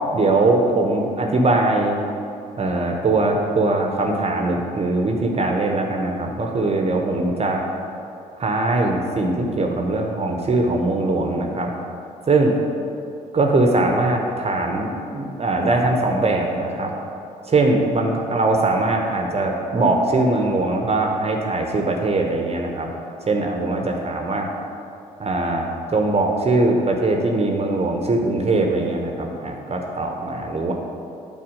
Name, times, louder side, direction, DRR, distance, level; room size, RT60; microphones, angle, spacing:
voice 1, 0.1-2.0 2.6-7.6 8.4-11.7 12.3-12.5 13.3-16.9 17.5-22.9 23.3-24.5 25.2-30.7, right 2 dB, 30° right, 2 dB, 1.0 m, -21 dB
8.7 x 4.4 x 6.3 m, 2.6 s
figure-of-eight pair, 40°, 20 cm